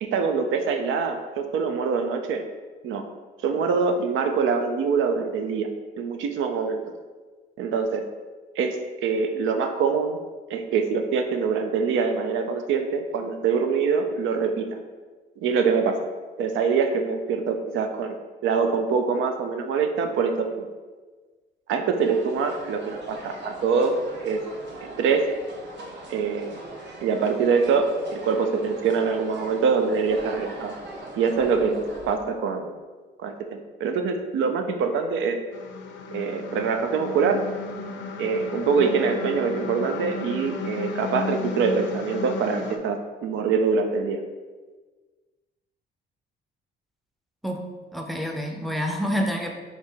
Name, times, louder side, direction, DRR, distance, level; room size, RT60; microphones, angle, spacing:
voice 1, 0.0-2.5 2.8-3.1 3.4-5.7 6.0-6.8 7.6-8.0 8.6-8.8 9.0-10.2 10.5-14.7 15.4-16.0 16.4-18.2 18.4-20.7 21.7-24.4 24.8-25.3 26.1-26.6 27.0-30.7 31.2-32.7 33.2-35.4 36.1-37.4 38.2-44.2, right 5 dB, 80° right, 6 dB, 0.5 m, -24 dB
sound 1, 22.0-32.2, right 2 dB, 65° right, 0.8 m, -41 dB
sound 2, 35.5-42.8, left 4 dB, 70° left, 0.5 m, -34 dB
voice 2, 47.9-49.5, equal, ahead, 2 dB, 0.5 m, -27 dB
4.6 x 2.8 x 3.4 m, 1.4 s
cardioid pair, 90°, 20 cm